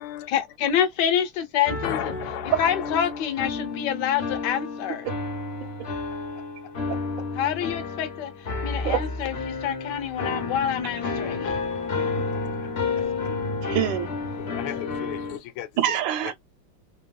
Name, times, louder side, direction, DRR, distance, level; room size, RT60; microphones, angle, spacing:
voice 1, 0.3-2.0 2.6-5.1 7.3-8.3 8.6-11.6, left 9 dB, 65° left, 1.3 m, -26 dB
sound 1, 1.6-15.4, left 4 dB, 50° left, 0.8 m, -31 dB
voice 2, 1.8-3.3 6.4-7.3 11.4-11.8 12.3-13.3 14.4-16.3, left 13 dB, 90° left, 1.5 m, -37 dB
voice 3, 13.6-14.1 15.8-16.3, right 11 dB, 70° right, 1.4 m, -25 dB
3.5 x 3.0 x 2.2 m
omnidirectional pair, 2.3 m